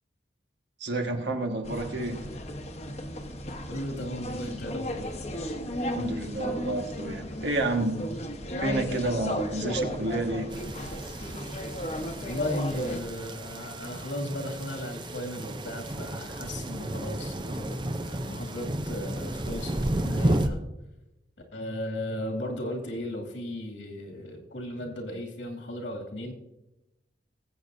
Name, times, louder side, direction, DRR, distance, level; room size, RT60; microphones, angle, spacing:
voice 1, 0.8-2.2 5.9-8.0 8.6-10.5, right 2 dB, 75° right, 4 dB, 1.6 m, -30 dB
sound 1, 1.6-13.0, equal, 35° left, 1.0 m, -34 dB
voice 2, 3.7-5.1 12.3-20.6 21.5-26.3, left 1 dB, 90° left, 0 dB, 2.4 m, -36 dB
sound 2, 10.5-20.5, right 1 dB, 25° right, 0.6 m, -33 dB
20.0 x 8.3 x 2.7 m, 0.96 s
head